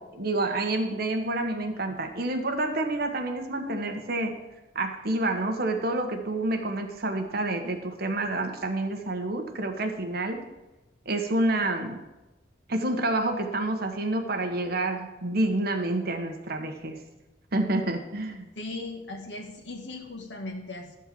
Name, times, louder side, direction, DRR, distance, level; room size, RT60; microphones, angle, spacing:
voice 1, 0.0-4.4 4.7-10.4 11.0-12.0 12.7-17.0 17.5-18.5, right 2 dB, 60° right, 4 dB, 1.3 m, -28 dB
voice 2, 18.5-21.0, left 2 dB, 90° left, 2 dB, 1.7 m, -38 dB
12.5 x 4.5 x 7.6 m, 1.1 s
head